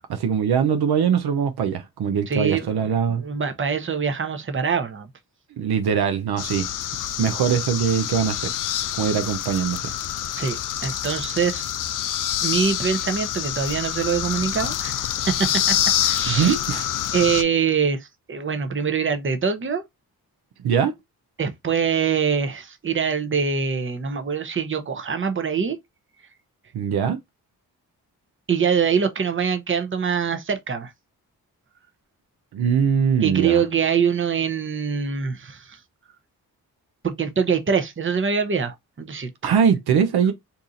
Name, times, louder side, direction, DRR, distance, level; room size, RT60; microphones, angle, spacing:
voice 1, 0.1-3.2 5.6-6.7 7.2-8.5 9.0-9.9 16.3-16.9 20.6-20.9 26.7-27.2 32.5-33.6 39.4-40.3, right 7 dB, 70° right, 0.6 m, -22 dB
voice 2, 2.3-5.1 10.4-11.7 12.4-15.7 16.0-16.6 17.1-19.8 21.4-25.8 28.5-30.9 33.2-35.8 37.0-39.5, right 6 dB, 30° right, 0.8 m, -24 dB
sound 1, 6.4-17.4, left 11 dB, 50° left, 0.5 m, -26 dB
2.7 x 2.4 x 3.9 m
supercardioid pair, 40°, 40 cm